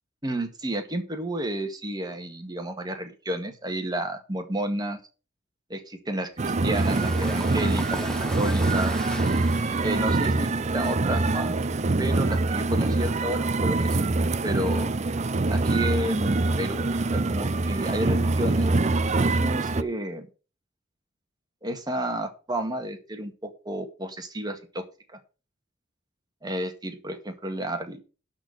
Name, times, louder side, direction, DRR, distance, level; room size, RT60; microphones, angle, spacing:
voice 1, 0.2-5.0 5.7-9.1 9.8-11.5 12.0-15.2 15.5-16.9 17.1-20.3 21.6-24.8 25.1-25.2 26.4-28.0, right 1 dB, 20° right, 5 dB, 1.9 m, -31 dB
sound 1, 6.4-19.8, right 2 dB, 35° right, 0.5 m, -24 dB
sound 2, 6.5-11.9, equal, 5° left, 1.0 m, -38 dB
11.5 x 4.4 x 8.2 m, 0.34 s
head